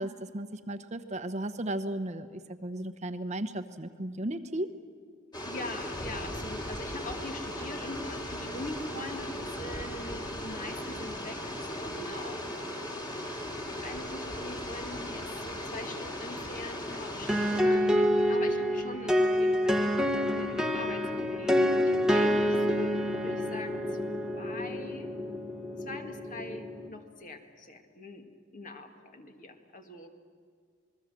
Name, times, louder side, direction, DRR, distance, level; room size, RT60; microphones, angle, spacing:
voice 1, 0.0-4.7, right 1 dB, 35° right, 9 dB, 1.0 m, -35 dB
sound 1, 5.3-17.6, left 1 dB, 20° left, 2.9 m, -37 dB
voice 2, 5.5-12.4 13.5-23.0 23.2-25.1 25.8-28.3 28.5-30.1, left 2 dB, 40° left, 5 dB, 2.1 m, -43 dB
sound 2, 17.3-26.9, equal, 5° right, 1.3 m, -27 dB
27.0 x 20.5 x 7.6 m, 2.1 s
head